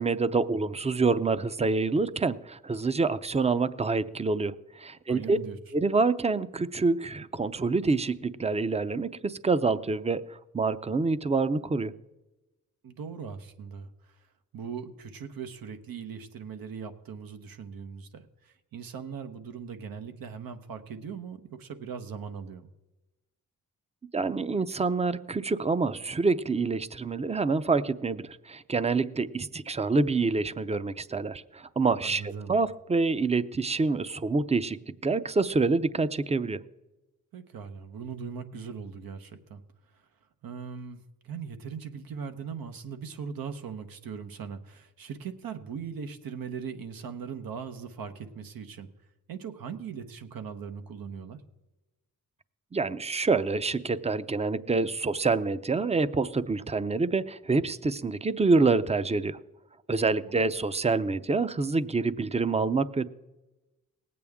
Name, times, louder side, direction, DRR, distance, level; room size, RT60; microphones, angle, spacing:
voice 1, 0.0-5.4 5.7-11.9 24.1-36.6 52.7-59.4 59.9-63.1, right 3 dB, 20° right, 14 dB, 0.6 m, -27 dB
voice 2, 5.1-5.6 12.8-14.2 14.5-22.7 32.0-32.6 37.3-39.6 39.9-40.1 40.4-48.9 49.3-51.4 60.3-60.4, right 6 dB, 80° right, 8 dB, 1.1 m, -40 dB
19.0 x 8.5 x 3.6 m, 1.1 s
cardioid pair, 60°, 35 cm